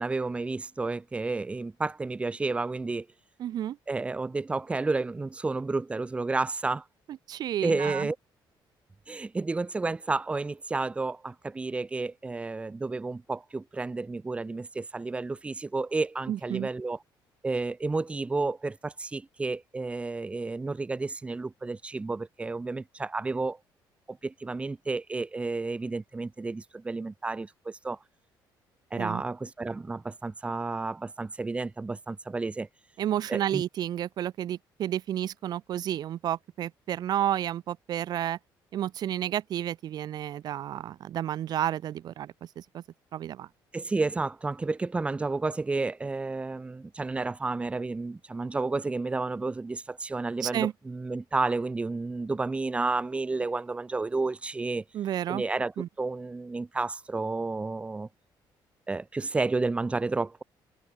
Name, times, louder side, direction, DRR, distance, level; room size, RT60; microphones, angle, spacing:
voice 1, 0.0-3.1 3.9-6.8 7.6-8.2 9.1-17.0 17.4-23.6 24.1-28.0 28.9-32.7 33.3-33.6 43.7-54.8 55.3-55.7 56.0-58.1 58.9-60.4, right 3 dB, 15° right, 2.2 m, -31 dB
voice 2, 3.4-3.8 7.3-8.1 16.3-16.7 29.0-29.2 33.0-38.4 38.7-42.8 43.1-43.5 50.4-50.7 54.9-55.4 55.8-55.9, right 11 dB, 55° right, 2.8 m, -31 dB
cardioid pair, 170°, 8 cm